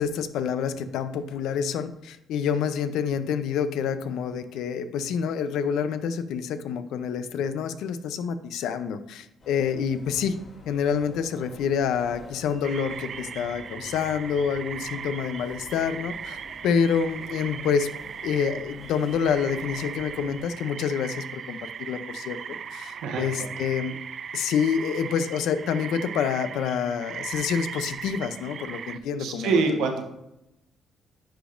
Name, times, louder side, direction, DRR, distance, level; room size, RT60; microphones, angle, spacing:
voice 1, 0.0-10.4 10.7-16.4 16.6-17.9 18.2-22.4 22.7-24.0 24.3-29.8, left 7 dB, 85° left, 11 dB, 0.5 m, -27 dB
sound 1, 9.4-20.5, left 1 dB, 50° left, 2.0 m, -48 dB
sound 2, 12.6-29.0, right 7 dB, 55° right, 0.3 m, -38 dB
voice 2, 22.5-23.6 29.2-30.0, right 4 dB, 90° right, 3 dB, 1.1 m, -27 dB
10.0 x 5.0 x 2.5 m, 0.86 s
cardioid pair, 90°, 0 cm